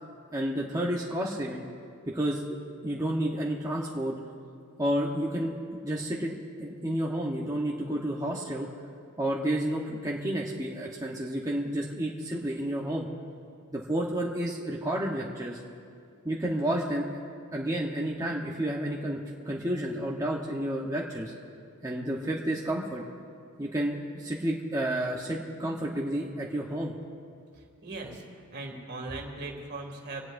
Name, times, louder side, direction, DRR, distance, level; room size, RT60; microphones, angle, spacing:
voice 1, 0.3-1.6 2.1-2.4 2.8-4.1 4.8-8.7 9.2-13.1 13.7-15.6 16.2-17.1 17.5-19.2 19.4-21.3 21.8-23.0 23.6-26.9, right 1 dB, 15° right, -3 dB, 1.0 m, -30 dB
voice 2, 27.8-28.2 28.5-30.2, right 2 dB, 50° right, 2 dB, 2.3 m, -38 dB
25.0 x 18.0 x 2.6 m, 2.3 s
head